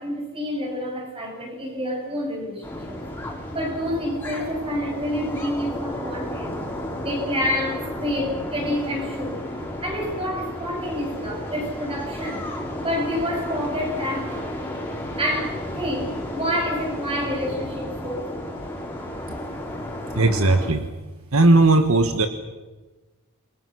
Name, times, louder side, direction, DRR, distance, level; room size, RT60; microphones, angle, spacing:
voice 1, 0.0-3.0 3.5-6.6 7.0-9.4 9.8-12.5 12.8-14.4 15.2-18.5, equal, 25° right, 1 dB, 7.3 m, -28 dB
sound 1, 2.6-20.7, left 1 dB, 10° left, 5.3 m, -33 dB
voice 2, 20.1-20.9 21.3-22.3, right 2 dB, 70° right, 8 dB, 1.4 m, -17 dB
28.0 x 22.5 x 6.4 m, 1.2 s
head